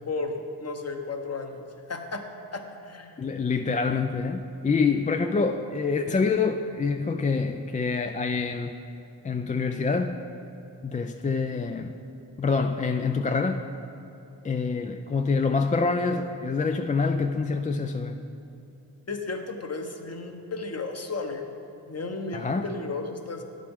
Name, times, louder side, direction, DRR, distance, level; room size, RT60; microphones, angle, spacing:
voice 1, 0.1-2.2 2.5-3.3 19.1-21.5 21.8-23.4, left 3 dB, 35° left, 5 dB, 1.0 m, -34 dB
voice 2, 3.2-8.7 9.2-10.2 10.8-12.0 12.4-13.7 14.4-18.2 22.3-22.6, left 4 dB, 20° left, 6 dB, 0.3 m, -26 dB
10.0 x 7.5 x 3.6 m, 2.9 s
cardioid pair, 45°, 42 cm